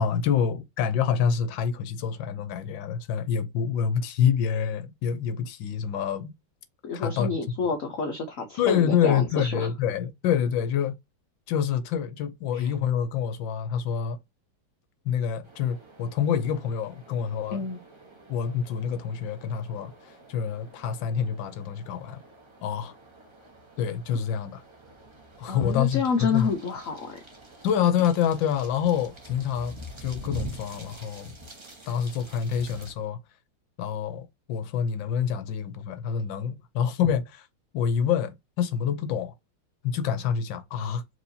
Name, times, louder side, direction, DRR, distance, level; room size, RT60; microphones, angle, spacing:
voice 1, 0.0-6.3 6.9-7.7 8.6-10.9 11.5-14.2 15.0-17.6 18.3-22.2 22.6-22.9 23.8-24.6 25.4-26.5 27.6-31.3 31.9-33.2 33.8-37.5 37.7-39.3 39.8-41.0, left 8 dB, 80° left, 1.4 m, -27 dB
voice 2, 6.8-9.7 12.5-12.7 17.5-17.8 25.5-27.2, left 5 dB, 55° left, 1.0 m, -29 dB
sound 1, 15.4-32.9, equal, 25° right, 0.6 m, -46 dB
4.6 x 3.0 x 2.7 m
omnidirectional pair, 2.1 m